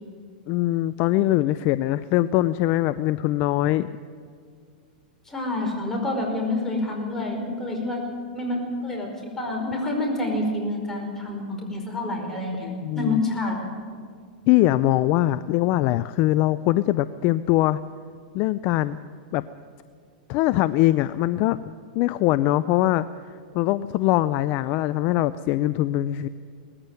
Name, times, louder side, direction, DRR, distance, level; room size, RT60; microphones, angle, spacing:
voice 1, 0.5-3.9 12.6-13.2 14.5-17.8 18.3-19.0 19.3-19.4 20.3-21.6 22.0-26.3, left 15 dB, 40° left, 15 dB, 0.5 m, -22 dB
voice 2, 5.2-8.0 8.3-9.1 9.4-12.7 12.9-13.6, left 2 dB, 10° left, 0 dB, 5.1 m, -27 dB
19.0 x 14.5 x 9.2 m, 2.2 s
hypercardioid pair, 135°, 5 cm